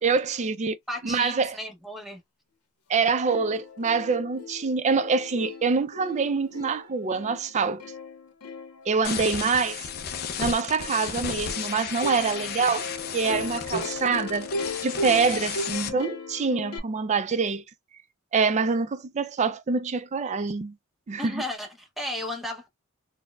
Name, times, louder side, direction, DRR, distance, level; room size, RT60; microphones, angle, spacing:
voice 1, 0.0-0.8 1.0-1.6 2.9-7.8 8.9-9.8 10.4-14.5 14.8-17.6 18.3-20.8 21.1-21.4, right 4 dB, 30° right, 0.3 m, -25 dB
voice 2, 0.9-2.2 21.2-22.7, left 1 dB, ahead, 0.7 m, -34 dB
Plucked string instrument, 2.9-3.0 3.3-16.8, left 2 dB, 85° left, 0.7 m, -37 dB
sound 1, 9.0-15.9, left 7 dB, 45° left, 0.5 m, -34 dB
4.1 x 2.1 x 2.2 m
head